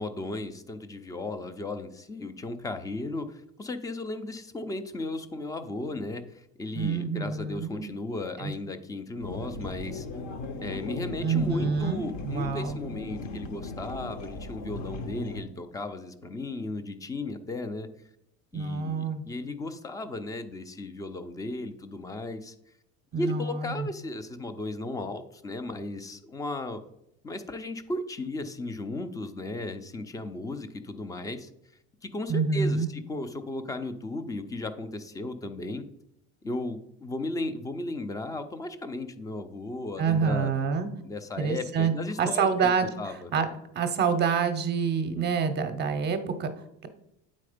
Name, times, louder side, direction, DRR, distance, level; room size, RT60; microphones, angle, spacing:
voice 1, 0.0-10.1 10.6-17.9 18.5-22.5 23.1-26.8 27.2-31.5 32.0-35.8 36.4-40.5 41.0-42.5 43.0-43.3, left 2 dB, 10° left, 10 dB, 0.3 m, -35 dB
voice 2, 6.7-7.9 8.4-8.5 11.2-12.8 18.5-19.2 23.1-23.9 32.3-32.9 40.0-40.9 41.4-41.9 42.2-43.5 43.7-46.5, right 5 dB, 30° right, 8 dB, 0.6 m, -27 dB
sound 1, 9.2-15.4, left 2 dB, 55° left, 0.9 m, -37 dB
8.5 x 4.2 x 5.0 m, 0.80 s
cardioid pair, 150°, 33 cm